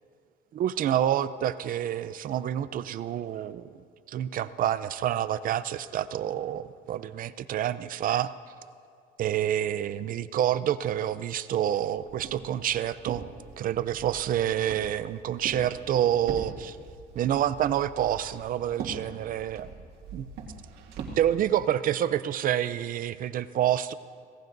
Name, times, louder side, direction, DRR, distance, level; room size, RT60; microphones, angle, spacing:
voice 1, 0.5-3.7 4.1-8.3 9.2-13.3 13.6-16.8 17.1-19.7 20.1-20.3 21.2-23.9, right 11 dB, 55° right, 14 dB, 0.6 m, -28 dB
Walk footsteps, 12.0-21.3, right 4 dB, 75° right, 2.1 m, -43 dB
24.5 x 18.0 x 2.7 m, 2.3 s
cardioid pair, 110°, 17 cm